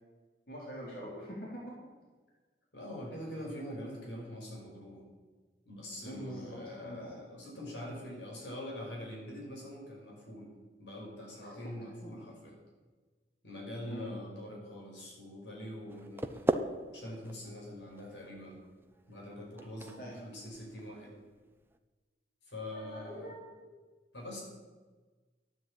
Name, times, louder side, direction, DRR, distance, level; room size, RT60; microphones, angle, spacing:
voice 1, 0.5-1.8 6.0-7.2 11.4-11.6 12.0-12.3 13.9-14.1 19.5-20.2 22.7-23.7, equal, 55° left, -5 dB, 4.0 m, -45 dB
voice 2, 2.7-5.0 5.6-10.5 10.8-12.6 13.4-18.6 19.1-21.2 22.5-23.3 24.1-24.4, left 1 dB, 85° left, -2 dB, 5.5 m, -44 dB
sound 1, 15.9-21.8, right 1 dB, 10° right, 0.6 m, -39 dB
13.0 x 9.5 x 8.8 m, 1.3 s
head